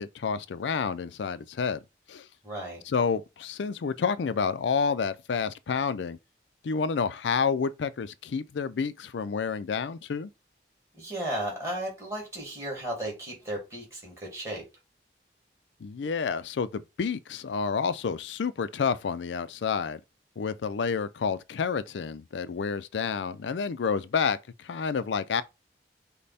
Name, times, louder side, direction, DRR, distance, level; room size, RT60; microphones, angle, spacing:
voice 1, 0.0-1.8 2.1-2.3 2.9-6.2 6.6-10.3 15.8-20.0 20.4-25.4, left 5 dB, 90° left, 0.4 m, -29 dB
voice 2, 2.4-2.8 11.0-14.7, right 1 dB, 15° right, 2.3 m, -34 dB
5.2 x 2.2 x 4.1 m
head